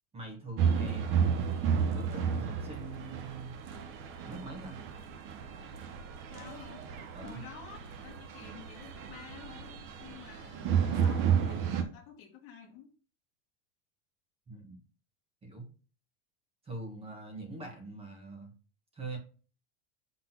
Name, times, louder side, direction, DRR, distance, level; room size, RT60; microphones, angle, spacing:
voice 1, 0.1-1.4 1.9-3.5 4.3-4.8 7.1-7.4 14.5-14.8 15.4-15.7 16.6-18.5 18.9-19.2, right 2 dB, 15° right, 2 dB, 1.4 m, -43 dB
sound 1, 0.6-11.8, right 7 dB, 35° right, 0.8 m, -32 dB
voice 2, 6.3-6.8 7.2-12.9, left 7 dB, 35° left, 3 dB, 1.3 m, -50 dB
6.0 x 3.6 x 5.9 m, 0.37 s
supercardioid pair, 160°, 37 cm